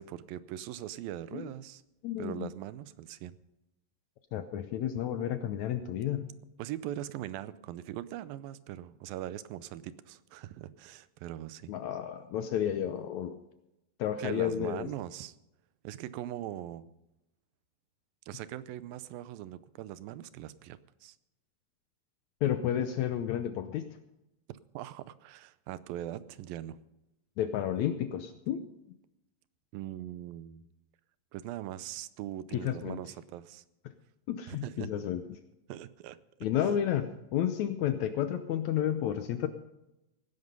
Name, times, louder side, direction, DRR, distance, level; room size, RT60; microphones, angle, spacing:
voice 1, 0.0-1.8 2.2-3.4 6.6-11.7 14.2-15.4 15.8-16.9 18.3-21.2 24.7-26.8 29.7-30.7 31.3-33.6 34.5-35.1 35.7-36.7, right 12 dB, 90° right, 16 dB, 2.5 m, -41 dB
voice 2, 2.0-2.5 4.3-6.3 11.7-13.4 14.0-14.9 22.4-23.9 27.4-28.6 32.5-33.0 34.3-35.2 36.4-39.5, left 10 dB, 75° left, 9 dB, 1.7 m, -31 dB
18.0 x 10.5 x 5.4 m, 0.90 s
omnidirectional pair, 4.0 m